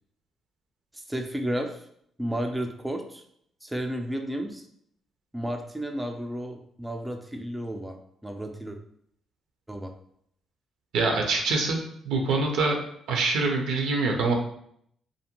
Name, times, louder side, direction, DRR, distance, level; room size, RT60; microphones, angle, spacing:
voice 1, 0.9-1.9 2.2-3.2 3.6-4.7 5.3-8.0 8.2-8.8 9.7-9.9, equal, 10° right, 3 dB, 0.3 m, -32 dB
voice 2, 10.9-11.8 12.0-12.8 13.1-14.3, right 3 dB, 85° right, 2 dB, 0.6 m, -24 dB
2.5 x 2.1 x 2.8 m, 0.68 s
cardioid pair, 90°, 0 cm